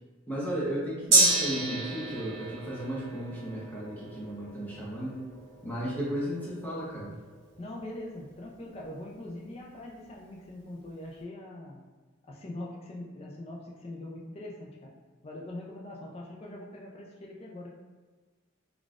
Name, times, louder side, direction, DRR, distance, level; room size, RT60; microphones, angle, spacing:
voice 1, 0.3-5.2 5.6-7.1, equal, 10° left, -7 dB, 0.8 m, -34 dB
Gong, 1.1-8.9 9.2-9.3, right 2 dB, 60° right, 0.9 m, -31 dB
voice 2, 7.6-11.8 12.3-14.9 15.2-17.7, left 1 dB, 30° left, -2 dB, 0.4 m, -42 dB
3.8 x 2.3 x 2.4 m, 1.4 s
head